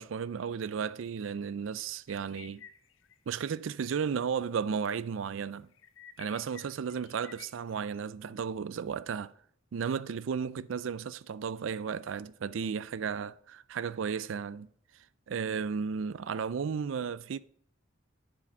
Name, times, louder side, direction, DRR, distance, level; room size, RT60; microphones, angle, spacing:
voice 1, 0.0-2.6 3.3-5.7 6.2-9.3 9.7-14.7 15.3-17.4, right 6 dB, 90° right, 0.4 m, -34 dB
sound 1, 2.1-3.2 3.5-3.7 4.1-4.2 5.7-8.0, left 8 dB, 80° left, 0.6 m, -52 dB
8.5 x 4.9 x 6.0 m
head